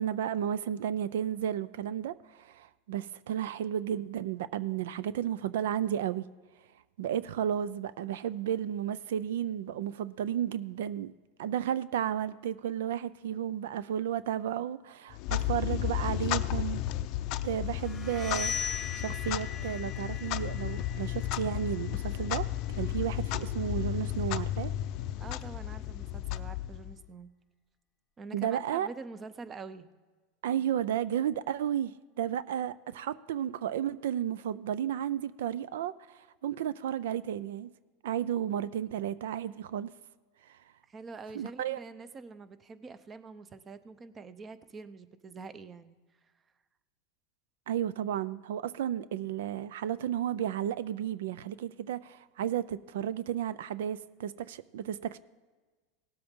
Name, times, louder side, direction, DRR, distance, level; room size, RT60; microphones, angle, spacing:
voice 1, 0.0-6.3 7.0-11.1 11.4-16.8 17.4-22.5 22.8-24.7 28.3-28.9 30.4-37.7 38.0-39.9 40.5-40.6 41.3-41.8 47.7-55.2, right 10 dB, 85° right, 0.4 m, -33 dB
Clock, 15.1-27.1, left 13 dB, 50° left, 0.5 m, -33 dB
sound 1, 17.8-23.5, left 7 dB, 10° left, 1.1 m, -40 dB
voice 2, 25.2-27.3 28.2-29.9 40.9-46.0, right 4 dB, 20° right, 0.6 m, -45 dB
18.0 x 7.7 x 3.7 m
supercardioid pair, 140°, 0 cm